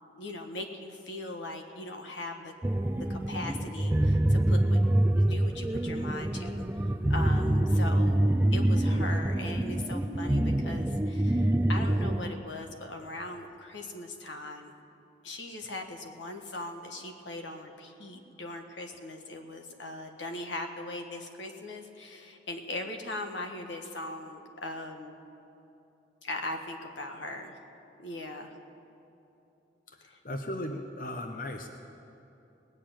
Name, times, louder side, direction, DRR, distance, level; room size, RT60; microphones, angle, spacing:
voice 1, 0.2-2.5 2.9-4.8 5.2-8.2 8.5-14.7 15.2-25.2 26.2-27.6 28.0-28.5 30.0-30.2, left 2 dB, 90° left, 4 dB, 1.4 m, -40 dB
sound 1, 2.6-12.3, right 1 dB, 10° right, 0.3 m, -26 dB
voice 2, 29.9-31.7, left 1 dB, 50° left, 5 dB, 0.8 m, -37 dB
19.5 x 6.7 x 9.1 m, 2.9 s
head